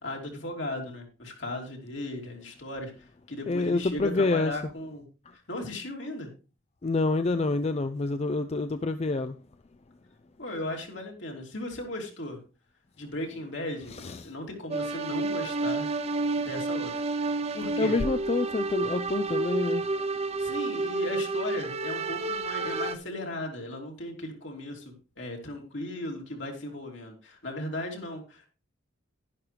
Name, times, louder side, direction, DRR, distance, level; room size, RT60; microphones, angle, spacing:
voice 1, 0.0-5.0 5.5-6.3 10.4-12.4 13.0-15.9 16.4-17.0 17.5-17.9 20.4-28.5, left 1 dB, 65° left, 3.2 m, -37 dB
voice 2, 3.5-4.5 6.8-9.4 13.9-14.3 17.8-19.9, left 3 dB, 30° left, 0.4 m, -27 dB
sound 1, 14.7-23.0, right 3 dB, 30° right, 0.8 m, -30 dB
11.5 x 10.5 x 3.3 m
head